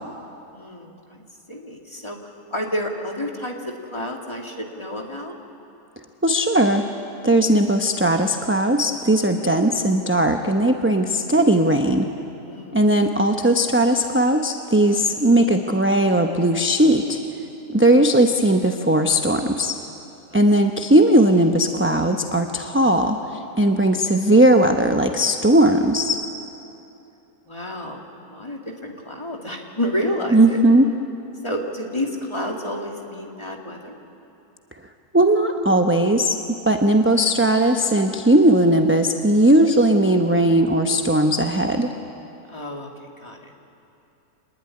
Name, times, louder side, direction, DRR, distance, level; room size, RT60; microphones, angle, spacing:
voice 1, 0.5-1.2 1.5-5.4 9.2-9.6 12.4-12.8 14.9-15.1 20.3-20.4 27.5-30.6 31.4-34.0 36.6-37.1 42.5-43.5, left 1 dB, 20° left, 1 dB, 2.5 m, -30 dB
voice 2, 6.2-6.9 7.2-12.1 12.7-17.2 17.7-19.8 20.3-26.2 30.3-30.8 35.1-41.9, right 1 dB, 10° right, 4 dB, 0.7 m, -18 dB
26.0 x 20.5 x 9.9 m, 2.8 s
omnidirectional pair, 1.6 m